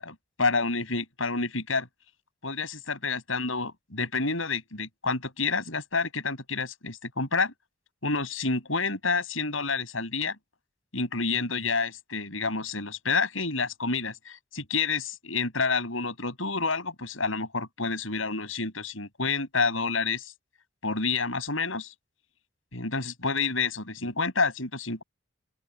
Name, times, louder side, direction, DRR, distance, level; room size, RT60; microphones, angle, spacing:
voice 1, 0.0-1.9 2.4-7.5 8.0-10.4 10.9-20.3 20.8-21.9 22.7-25.0, left 4 dB, 85° left, 7.5 m, -29 dB
open air
head